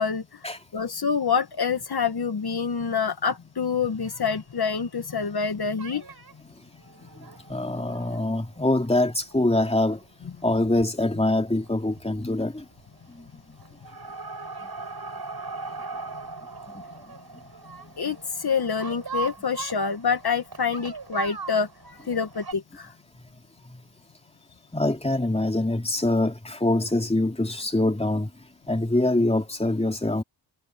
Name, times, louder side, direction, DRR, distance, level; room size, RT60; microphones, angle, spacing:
voice 1, 0.0-0.4 0.7-6.0 18.0-22.9, left 6 dB, 50° left, 2.0 m, -27 dB
sound 1, 3.9-5.5 5.8-6.3 6.8-8.9 9.3-9.4 9.6-9.7 10.0-10.1 11.5-11.7 12.0-12.5 12.7-13.3 13.6-22.5, right 4 dB, 50° right, 6.9 m, -39 dB
voice 2, 7.1-10.0 10.4-12.6 13.1-13.2 14.6-14.7 16.7-16.8 23.7-23.8 24.7-28.3 28.7-30.2, left 1 dB, 15° left, 3.2 m, -24 dB
cardioid pair, 50°, 47 cm